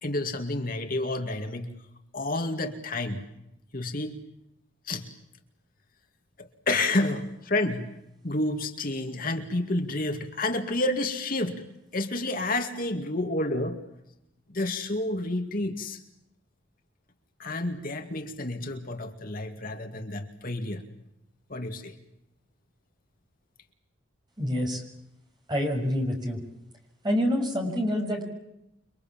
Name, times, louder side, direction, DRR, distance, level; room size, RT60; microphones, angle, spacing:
voice 1, 0.0-1.7 2.1-3.2 3.7-4.2 4.9-5.1 6.7-7.9 8.2-11.6 11.9-13.8 14.5-16.0 17.4-20.8 21.5-21.9, left 2 dB, 45° left, 5 dB, 2.4 m, -29 dB
voice 2, 24.4-24.8 25.5-26.4 27.0-28.2, equal, 20° right, 1 dB, 6.3 m, -27 dB
29.5 x 23.5 x 7.4 m, 0.83 s
head